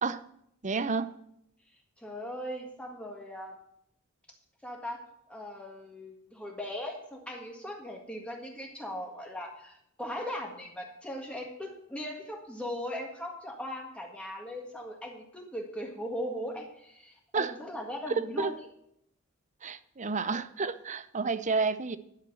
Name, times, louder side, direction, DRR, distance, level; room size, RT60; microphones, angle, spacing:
voice 1, 0.6-1.1 17.3-17.5 18.1-18.5 19.6-22.0, right 4 dB, 35° right, 14 dB, 0.7 m, -30 dB
voice 2, 2.0-3.5 4.6-5.0 5.3-18.5, equal, 5° left, 0 dB, 1.7 m, -39 dB
11.5 x 6.7 x 7.8 m, 0.74 s
head